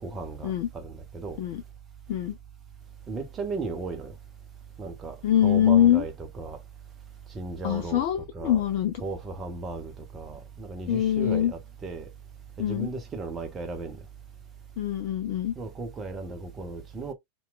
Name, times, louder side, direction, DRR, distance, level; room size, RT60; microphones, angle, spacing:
voice 1, 0.0-1.4 3.1-4.1 4.8-5.2 5.4-6.6 7.3-8.0 8.3-8.6 9.0-12.1 12.6-14.0 15.6-17.1, right 3 dB, 20° right, 0.6 m, -36 dB
voice 2, 5.2-6.0 7.6-8.9 10.9-11.5 12.6-12.9 14.8-15.5, left 11 dB, 45° left, 0.3 m, -23 dB
2.8 x 2.2 x 2.2 m
figure-of-eight pair, 90°, 0 cm